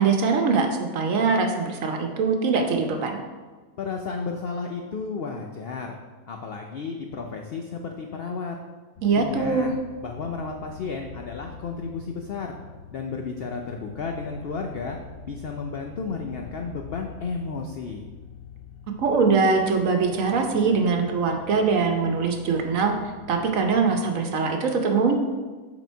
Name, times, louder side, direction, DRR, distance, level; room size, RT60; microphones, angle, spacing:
voice 1, 0.0-3.2 9.0-9.7 19.0-22.9 23.3-25.2, right 4 dB, 65° right, 4 dB, 1.1 m, -22 dB
voice 2, 3.8-6.0 6.3-8.6 9.1-9.7 10.0-12.6 12.9-15.0 15.2-18.1, left 4 dB, 75° left, 3 dB, 0.5 m, -33 dB
sound 1, 9.0-23.8, left 6 dB, 50° left, 0.8 m, -45 dB
7.2 x 3.8 x 4.5 m, 1.4 s
omnidirectional pair, 1.6 m